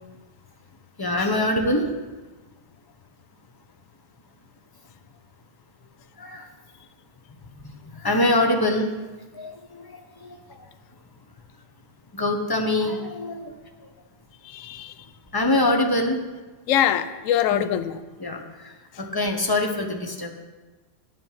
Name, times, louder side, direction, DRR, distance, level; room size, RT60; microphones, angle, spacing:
voice 1, 1.0-1.9 6.2-6.5 7.6-8.9 9.3-10.7 12.1-13.9 15.3-16.2 17.5-17.7 18.2-20.3, left 1 dB, 25° left, 3 dB, 0.4 m, -25 dB
voice 2, 14.4-14.9 16.7-18.0, left 10 dB, 70° left, 11 dB, 0.8 m, -23 dB
9.4 x 7.7 x 5.6 m, 1.2 s
omnidirectional pair, 1.8 m